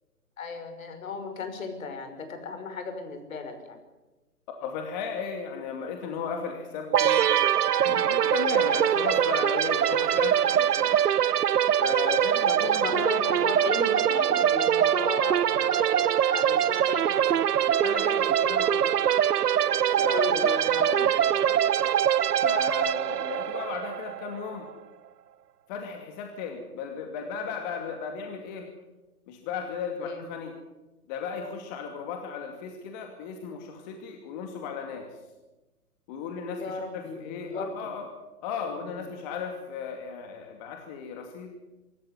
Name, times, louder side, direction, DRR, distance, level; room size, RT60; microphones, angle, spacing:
voice 1, 0.4-3.8 12.5-17.5 20.1-20.9 30.0-30.2 36.6-37.7 38.7-38.9, left 4 dB, 60° left, 7 dB, 5.9 m, -35 dB
voice 2, 4.6-7.3 7.8-10.9 11.8-12.9 17.8-18.9 19.9-21.6 22.4-24.7 25.7-28.7 29.3-30.6 31.1-35.1 36.1-38.1 38.4-41.6, left 6 dB, 30° left, 3 dB, 2.6 m, -35 dB
sound 1, 6.9-24.5, right 10 dB, 85° right, 0.7 m, -23 dB
25.0 x 13.5 x 9.7 m, 1.1 s
hypercardioid pair, 145°, 46 cm